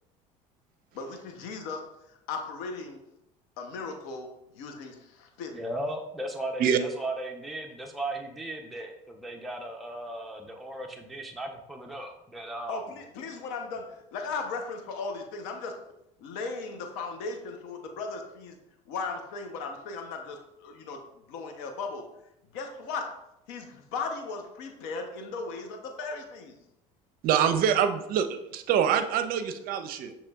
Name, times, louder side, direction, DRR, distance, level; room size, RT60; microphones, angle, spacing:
voice 1, 0.9-3.0 3.6-5.5 12.7-15.8 16.2-18.6 18.9-21.0 21.3-22.1 22.5-23.1 23.5-26.5, left 4 dB, 70° left, 4 dB, 0.8 m, -37 dB
voice 2, 5.5-12.9, right 1 dB, ahead, 1 dB, 0.6 m, -36 dB
voice 3, 27.2-30.1, right 8 dB, 55° right, 9 dB, 0.5 m, -25 dB
6.4 x 3.0 x 2.3 m, 0.83 s
hypercardioid pair, 70°, 18 cm